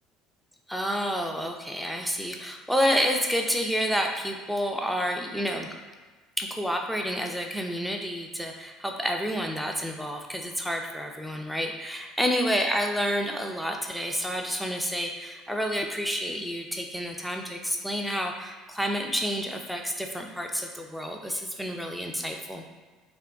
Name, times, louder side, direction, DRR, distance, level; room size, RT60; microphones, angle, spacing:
voice 1, 0.7-5.7 6.4-22.6, equal, ahead, 2 dB, 0.5 m, -29 dB
3.4 x 2.2 x 3.7 m, 1.4 s
supercardioid pair, 90°, 0 cm